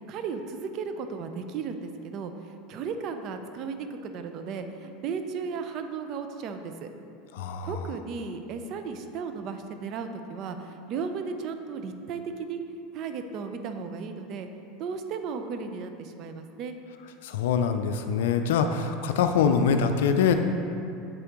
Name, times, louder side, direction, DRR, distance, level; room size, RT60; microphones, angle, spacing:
voice 1, 0.0-6.9 7.6-12.6 12.9-14.5 14.8-16.8, right 5 dB, 50° right, 7 dB, 0.5 m, -35 dB
voice 2, 7.3-7.7 17.2-20.3, left 6 dB, 75° left, 7 dB, 0.3 m, -24 dB
7.4 x 4.9 x 3.0 m, 2.6 s
hypercardioid pair, 90°, 0 cm